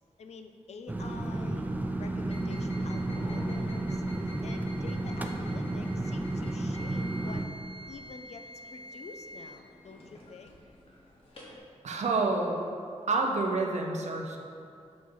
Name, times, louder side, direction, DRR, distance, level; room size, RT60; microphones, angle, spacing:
voice 1, 0.2-1.7 2.0-4.0 4.4-7.5 7.9-8.5 8.7-10.6, left 4 dB, 65° left, 6 dB, 0.5 m, -47 dB
sound 1, 0.9-7.4, right 2 dB, 15° right, 0.4 m, -32 dB
sound 2, 2.2-11.6, left 1 dB, 50° left, 1.4 m, -47 dB
voice 2, 11.8-12.6 13.1-14.4, right 3 dB, 70° right, 1 dB, 0.7 m, -28 dB
6.9 x 4.2 x 4.7 m, 2.4 s
wide cardioid pair, 135°, 12 cm